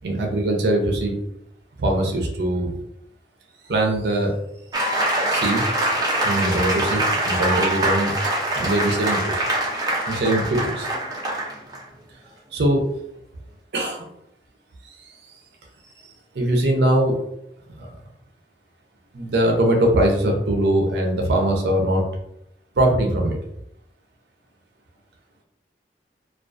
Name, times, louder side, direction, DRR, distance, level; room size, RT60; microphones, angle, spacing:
voice 1, 0.0-1.2 1.8-2.7 3.7-4.3 5.3-5.6 6.2-8.1 8.5-9.4 10.1-10.9 12.5-12.8 13.7-14.1 16.3-17.1 17.8-17.9 19.1-22.0 22.8-23.4, right 1 dB, 75° right, 1 dB, 0.5 m, -21 dB
sound 1, 4.7-11.8, right 1 dB, 20° right, 0.5 m, -24 dB
2.3 x 2.3 x 2.4 m, 0.78 s
head